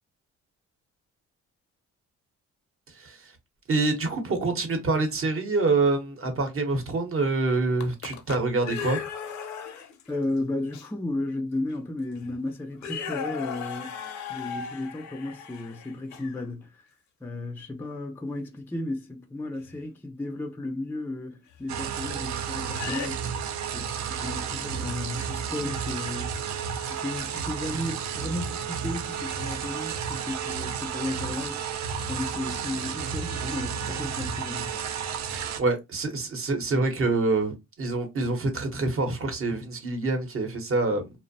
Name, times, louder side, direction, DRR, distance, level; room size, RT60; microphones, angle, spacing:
voice 1, 3.0-3.3 3.7-9.0 35.3-41.1, right 3 dB, 45° right, 0.8 m, -26 dB
sound 1, 7.6-10.1 10.7-10.9 11.7-11.8 12.1-12.4 12.8-16.4 19.6-19.8 21.5-21.6 22.6-23.1, left 7 dB, 65° left, 0.6 m, -37 dB
voice 2, 10.1-14.0 14.3-16.8 17.2-23.2 23.7-26.3 26.8-31.6 32.1-34.8, left 2 dB, 5° left, 0.4 m, -34 dB
sound 2, 21.7-35.6, right 7 dB, 65° right, 0.5 m, -32 dB
2.5 x 2.0 x 2.6 m
cardioid pair, 90°, 30 cm